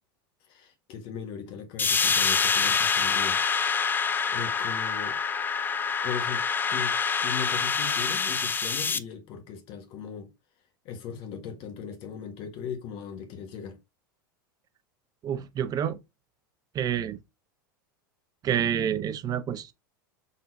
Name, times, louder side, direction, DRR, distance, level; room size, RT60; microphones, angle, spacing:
voice 1, 0.5-3.4 3.9-5.2 6.0-10.3 10.8-13.8, left 7 dB, 50° left, 1.5 m, -38 dB
sound 1, 1.8-9.0, left 5 dB, 15° left, 0.4 m, -26 dB
voice 2, 15.2-16.0 16.7-17.2 18.4-19.7, right 9 dB, 35° right, 0.6 m, -28 dB
4.2 x 3.9 x 2.6 m
hypercardioid pair, 90°, 11 cm